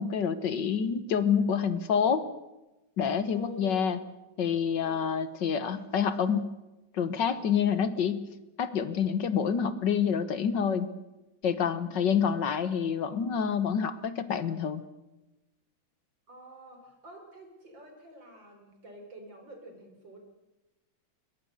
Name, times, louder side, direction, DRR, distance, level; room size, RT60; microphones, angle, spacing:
voice 1, 0.0-2.2 3.0-4.0 4.4-6.5 6.9-8.3 8.6-10.9 11.4-14.8, left 7 dB, 65° left, 13 dB, 1.8 m, -27 dB
voice 2, 3.3-3.9 4.8-5.0 11.8-12.0 16.3-20.2, right 1 dB, 65° right, 4 dB, 5.1 m, -48 dB
21.5 x 21.0 x 6.5 m, 1.0 s
omnidirectional pair, 2.2 m